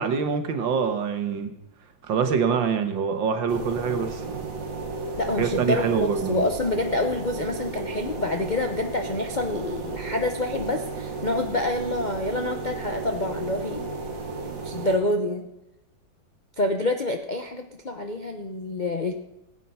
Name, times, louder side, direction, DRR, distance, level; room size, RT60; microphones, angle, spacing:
voice 1, 0.0-1.5 2.1-4.4 5.4-6.5, right 6 dB, 75° right, 7 dB, 1.9 m, -25 dB
sound 1, 3.5-15.0, right 3 dB, 45° right, 2.0 m, -34 dB
voice 2, 5.2-13.9 14.6-15.5 16.6-19.1, left 2 dB, 40° left, 4 dB, 0.6 m, -27 dB
19.5 x 8.2 x 5.5 m, 0.90 s
omnidirectional pair, 2.1 m